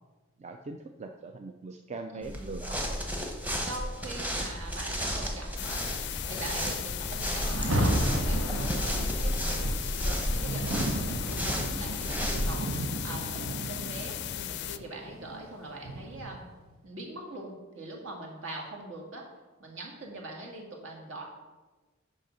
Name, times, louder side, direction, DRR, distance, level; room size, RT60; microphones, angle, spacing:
voice 1, 0.4-3.1, right 3 dB, 35° right, 5 dB, 0.4 m, -41 dB
voice 2, 2.1-2.4 3.6-5.8 6.3-9.7 10.0-12.7 13.0-16.5 16.8-19.2 19.6-21.2, right 2 dB, 70° right, 0 dB, 1.9 m, -42 dB
sound 1, 2.2-12.8, equal, 10° right, 1.0 m, -33 dB
sound 2, 5.6-14.8, left 11 dB, 55° left, 0.4 m, -37 dB
Rain, 7.4-16.5, right 1 dB, 85° right, 1.0 m, -33 dB
6.5 x 5.5 x 5.7 m, 1.2 s
head